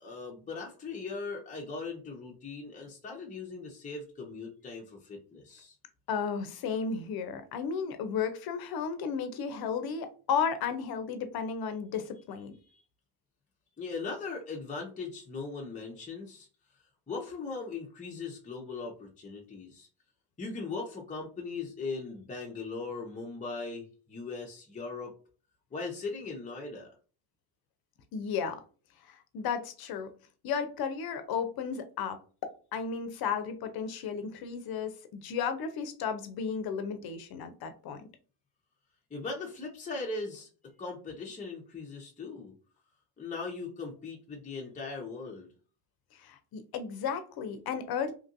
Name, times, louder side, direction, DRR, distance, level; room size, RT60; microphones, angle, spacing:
voice 1, 0.0-5.8 12.7-12.8 13.8-16.5 17.1-19.9 20.4-25.1 25.7-26.9 39.1-40.5 40.8-42.5 43.2-45.5, left 4 dB, 15° left, 0.7 m, -39 dB
voice 2, 6.1-12.5 28.1-28.6 29.1-30.1 30.4-38.0 46.1-48.1, left 6 dB, 50° left, 0.7 m, -34 dB
2.9 x 2.5 x 2.5 m
supercardioid pair, 80°, 46 cm